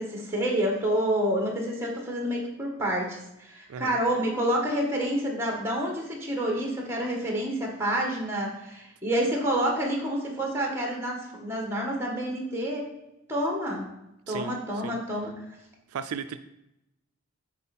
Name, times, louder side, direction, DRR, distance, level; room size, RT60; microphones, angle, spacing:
voice 1, 0.0-12.9 13.3-13.9 14.3-15.3, right 1 dB, 10° right, 0 dB, 1.4 m, -28 dB
voice 2, 15.9-16.4, right 6 dB, 75° right, 10 dB, 0.4 m, -35 dB
9.4 x 4.3 x 4.2 m, 0.88 s
head